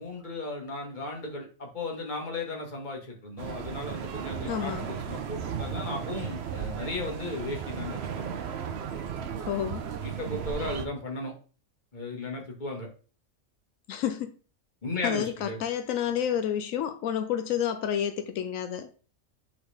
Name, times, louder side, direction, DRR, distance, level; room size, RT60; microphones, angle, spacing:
voice 1, 0.0-8.4 10.0-11.3 11.9-12.9 14.8-15.6, left 2 dB, 35° left, 1.8 m, -36 dB
sound 1, 3.4-10.9, right 7 dB, 60° right, 0.9 m, -35 dB
voice 2, 4.5-4.9 9.5-9.9 13.9-14.3 15.0-18.9, left 9 dB, 85° left, 1.0 m, -29 dB
7.9 x 4.1 x 3.4 m
omnidirectional pair, 1.4 m